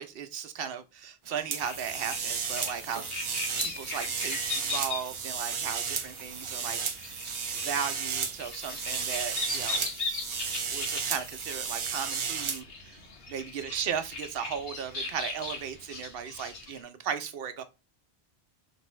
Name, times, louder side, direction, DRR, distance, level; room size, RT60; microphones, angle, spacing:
voice 1, 0.0-3.0 3.6-7.2 7.5-9.8 10.7-13.0 13.3-17.6, right 7 dB, 70° right, 0.8 m, -36 dB
sound 1, 1.5-12.6, right 6 dB, 50° right, 0.3 m, -34 dB
sound 2, 1.6-16.8, left 4 dB, 70° left, 1.1 m, -39 dB
4.5 x 2.6 x 3.0 m
omnidirectional pair, 1.0 m